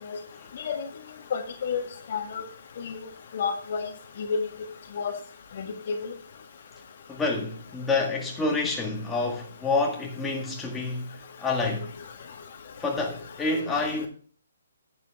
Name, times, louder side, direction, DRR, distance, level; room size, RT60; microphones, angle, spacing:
voice 1, 1.3-1.8 2.1-2.4 2.8-3.0 3.3-3.9 4.2-4.4 5.0-5.1 5.6-5.9, left 6 dB, 50° left, 1.6 m, -29 dB
voice 2, 7.1-11.1 11.4-11.9 12.8-14.1, left 3 dB, 10° left, 1.8 m, -28 dB
10.0 x 8.7 x 3.6 m
figure-of-eight pair, 135°, 0 cm